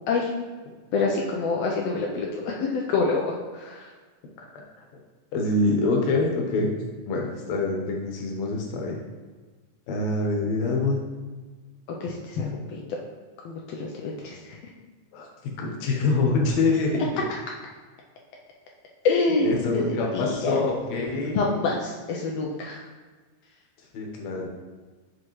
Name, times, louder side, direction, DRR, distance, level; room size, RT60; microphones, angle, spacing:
voice 1, 0.9-3.9 12.0-12.8 13.4-14.7 19.0-19.8 20.1-20.5 21.3-22.9, left 3 dB, 90° left, -1 dB, 1.4 m, -27 dB
voice 2, 5.3-9.0 9.9-11.0 15.1-17.2 19.4-21.4 23.9-24.5, left 3 dB, 65° left, 0 dB, 2.2 m, -25 dB
7.3 x 6.0 x 3.1 m, 1.4 s
omnidirectional pair, 3.8 m